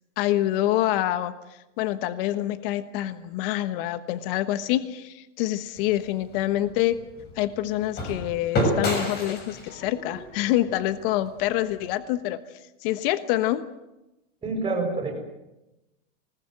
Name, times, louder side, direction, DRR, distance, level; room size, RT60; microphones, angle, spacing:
voice 1, 0.2-1.3 1.8-7.0 7.4-12.4 12.8-13.6, left 14 dB, 50° left, 12 dB, 1.3 m, -26 dB
sound 1, 5.7-11.9, left 1 dB, 25° left, 6.7 m, -31 dB
voice 2, 14.4-15.2, right 3 dB, 15° right, 3 dB, 6.7 m, -27 dB
26.0 x 20.0 x 7.8 m, 0.95 s
supercardioid pair, 155°, 37 cm